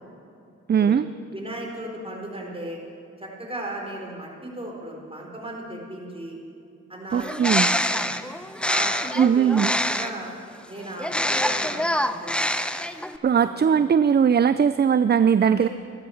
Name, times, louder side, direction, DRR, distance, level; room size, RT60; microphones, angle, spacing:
voice 1, 0.7-1.0 7.1-7.7 9.2-9.7 13.2-15.7, right 7 dB, 35° right, 13 dB, 0.4 m, -19 dB
voice 2, 1.3-2.8 3.2-6.3 6.9-8.1 8.6-9.6 9.9-10.3 10.7-12.4 13.4-13.8 15.4-15.7, right 1 dB, 20° right, -1 dB, 4.2 m, -36 dB
Bird, 7.1-10.3 11.0-13.2, left 1 dB, 5° left, 0.7 m, -25 dB
14.5 x 12.5 x 7.1 m, 2.5 s
cardioid pair, 60°, 29 cm